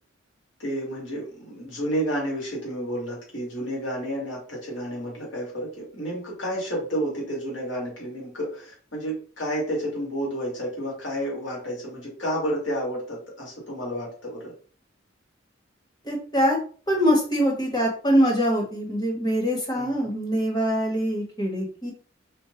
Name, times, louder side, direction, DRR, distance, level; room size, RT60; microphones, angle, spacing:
voice 1, 0.6-14.5 19.7-20.1, equal, 90° left, -3 dB, 2.1 m, -31 dB
voice 2, 16.0-16.6 16.9-21.9, equal, 25° left, 0 dB, 1.4 m, -23 dB
4.4 x 2.6 x 3.7 m, 0.42 s
head